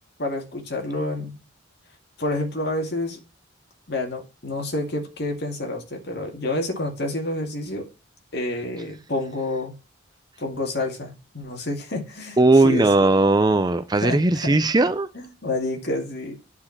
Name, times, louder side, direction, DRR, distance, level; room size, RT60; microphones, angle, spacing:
voice 1, 0.2-1.4 2.2-3.2 3.9-7.9 8.3-9.7 10.4-12.4 12.6-13.1 14.0-14.6 15.1-16.4, left 2 dB, 55° left, 2.3 m, -28 dB
voice 2, 12.4-15.1, right 2 dB, 20° right, 0.5 m, -18 dB
9.8 x 4.7 x 7.3 m
head